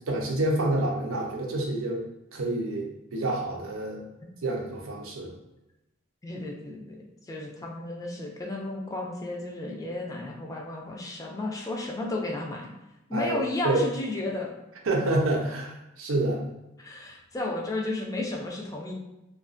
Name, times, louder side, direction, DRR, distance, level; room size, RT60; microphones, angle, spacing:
voice 1, 0.0-2.0 2.3-4.0 4.4-5.3 13.1-13.8 14.9-16.4, right 2 dB, 80° right, 0 dB, 0.6 m, -28 dB
voice 2, 6.2-7.0 7.3-12.7 13.1-14.5 16.8-18.9, left 2 dB, 15° left, -1 dB, 0.3 m, -33 dB
2.4 x 2.3 x 2.4 m, 0.95 s
head